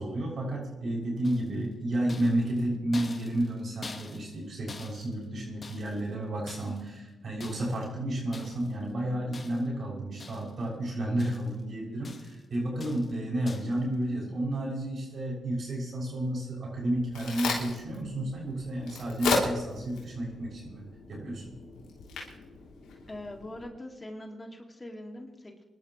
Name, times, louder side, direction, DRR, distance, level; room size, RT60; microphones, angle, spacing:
voice 1, 0.0-20.8 21.1-21.5, right 1 dB, 60° right, -3 dB, 6.8 m, -31 dB
sound 1, 1.2-1.7 2.1-6.1 6.5-7.0 7.4-7.9 8.3-8.8 9.3-9.8 10.2-10.7 10.9-11.6 12.0-12.5 12.8-13.2 13.5-13.8, left 4 dB, 45° left, 1.5 m, -47 dB
Crack, 16.7-23.6, left 4 dB, 85° left, 3.2 m, -35 dB
voice 2, 23.1-25.6, left 1 dB, 25° left, 2 dB, 2.4 m, -42 dB
26.0 x 12.0 x 3.2 m, 1.1 s
supercardioid pair, 50°, 0 cm